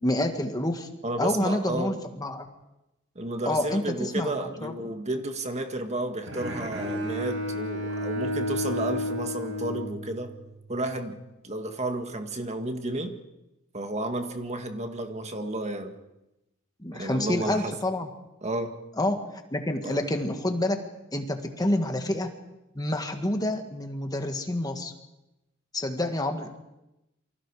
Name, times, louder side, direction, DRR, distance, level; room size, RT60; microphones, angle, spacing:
voice 1, 0.0-0.9 1.2-2.5 3.4-4.9 16.8-18.1 19.0-20.8 21.1-22.3 22.7-24.9 25.7-26.6, left 1 dB, 20° left, 5 dB, 1.8 m, -28 dB
voice 2, 1.0-1.9 3.1-10.3 10.7-13.1 13.7-16.0 16.9-17.7 18.4-18.7 19.8-20.0, right 1 dB, 35° right, 5 dB, 1.9 m, -32 dB
Bowed string instrument, 6.3-10.5, left 1 dB, 75° right, 4.8 m, -32 dB
28.5 x 24.5 x 5.0 m, 0.93 s
head